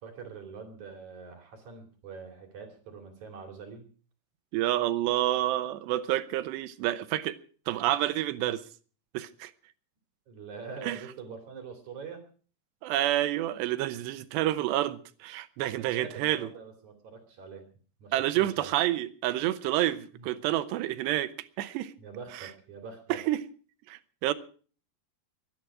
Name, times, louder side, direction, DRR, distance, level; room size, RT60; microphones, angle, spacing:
voice 1, 0.0-3.9 10.3-12.2 15.7-17.7 18.0-18.7 20.2-20.3 22.0-23.2, right 5 dB, 50° right, 3.6 m, -44 dB
voice 2, 4.5-7.4 7.7-8.6 9.1-9.5 10.8-11.0 12.8-16.5 18.1-21.3 21.6-21.9 22.3-22.5 23.1-23.4 23.9-24.3, right 14 dB, 80° right, 3.1 m, -29 dB
23.5 x 11.0 x 4.8 m
omnidirectional pair, 4.9 m